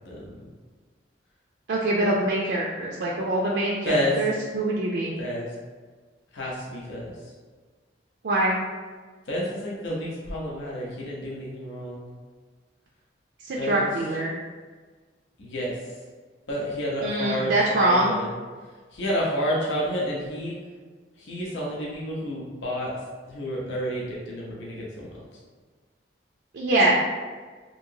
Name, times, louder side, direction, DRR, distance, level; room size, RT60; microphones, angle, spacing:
voice 1, 1.7-5.2 8.2-8.6 13.4-14.3 17.0-18.1 26.5-26.9, right 1 dB, 65° right, -4 dB, 0.4 m, -24 dB
voice 2, 3.8-4.3 5.2-5.5 6.3-7.1 9.3-12.1 13.6-13.9 15.4-15.7 16.5-18.3 18.9-20.5 21.2-22.9 23.3-25.1, equal, 85° left, -4 dB, 0.7 m, -30 dB
2.9 x 2.8 x 2.7 m, 1.4 s
head